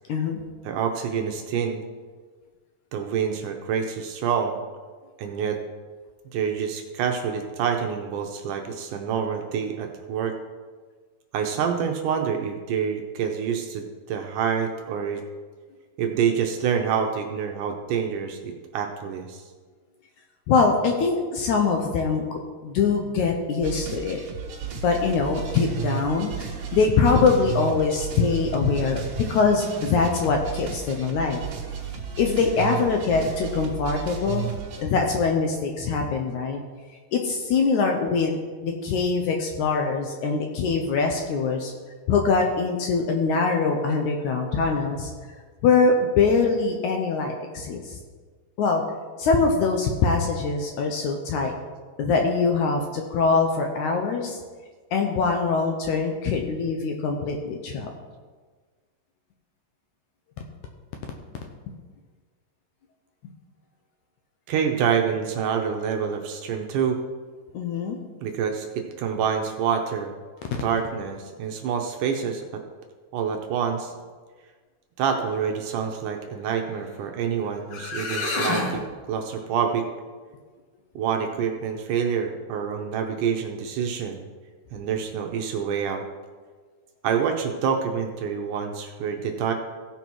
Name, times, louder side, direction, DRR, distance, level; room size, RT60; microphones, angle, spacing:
voice 1, 0.1-0.4 20.5-24.2 24.7-29.0 29.3-31.4 32.2-34.5 34.8-36.6 37.1-38.4 38.6-41.7 42.1-45.1 45.6-48.0 48.6-48.8 49.2-51.5 52.0-54.4 54.9-57.9 67.5-68.0, left 4 dB, 75° left, 2 dB, 1.9 m, -23 dB
voice 2, 0.6-1.8 2.9-4.6 5.2-5.6 6.3-10.4 11.3-15.2 16.0-19.4 64.5-67.0 68.2-70.1 70.6-72.6 73.1-73.9 75.0-78.8 79.1-79.8 81.0-84.3 84.7-86.0 87.0-89.5, right 7 dB, 75° right, 4 dB, 2.1 m, -27 dB
sound 1, 23.6-34.8, right 7 dB, 55° right, 1.9 m, -34 dB
sound 2, 77.4-77.5 77.7-78.8, left 2 dB, 50° left, 1.9 m, -27 dB
16.0 x 5.7 x 4.6 m, 1.5 s
omnidirectional pair, 4.1 m